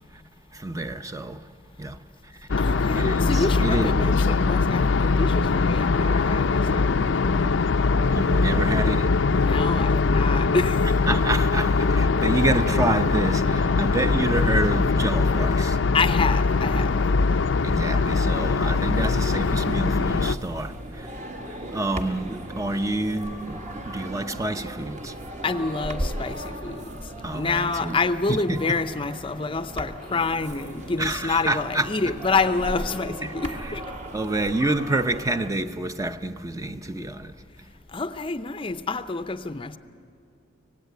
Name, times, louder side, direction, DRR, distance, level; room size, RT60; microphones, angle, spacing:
voice 1, 0.5-1.5 1.8-2.0 2.9-4.2 8.1-9.1 11.1-15.8 17.6-25.2 27.2-28.0 28.3-28.8 31.0-31.9 33.2-33.8 34.1-37.4, right 2 dB, 20° right, 0.6 m, -28 dB
sound 1, 2.5-20.4, left 4 dB, 80° left, 0.6 m, -22 dB
voice 2, 2.6-7.8 9.3-10.9 15.9-17.1 25.4-26.9 27.3-33.8 37.9-39.8, left 4 dB, 30° left, 0.6 m, -28 dB
sound 2, 18.9-35.5, right 1 dB, 40° right, 1.6 m, -37 dB
25.0 x 17.5 x 9.3 m
head